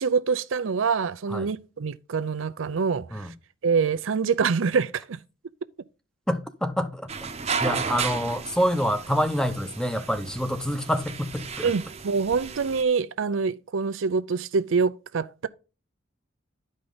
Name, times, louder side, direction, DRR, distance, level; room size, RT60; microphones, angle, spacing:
voice 1, 0.0-3.3 3.6-5.2 11.6-15.5, right 5 dB, 85° right, 0.5 m, -25 dB
voice 2, 6.3-7.1 7.6-11.7, equal, 5° left, 0.7 m, -27 dB
sound 1, 7.1-12.8, right 5 dB, 35° right, 0.8 m, -34 dB
11.0 x 5.2 x 3.9 m
head